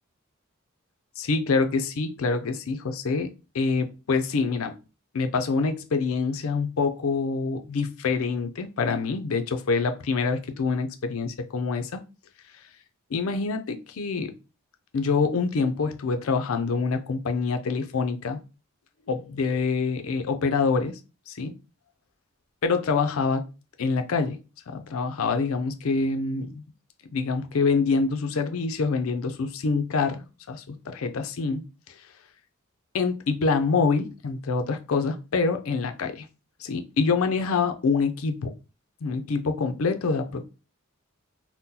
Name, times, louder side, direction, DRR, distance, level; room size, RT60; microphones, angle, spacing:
voice 1, 1.2-3.3 3.5-4.8 5.1-12.0 13.1-14.3 14.9-18.4 19.1-21.0 21.3-21.5 22.6-23.4 23.8-24.4 24.7-26.6 27.1-31.6 32.9-36.2 36.6-38.5 39.0-40.4, left 4 dB, 75° left, 0.5 m, -26 dB
2.7 x 2.1 x 3.6 m
head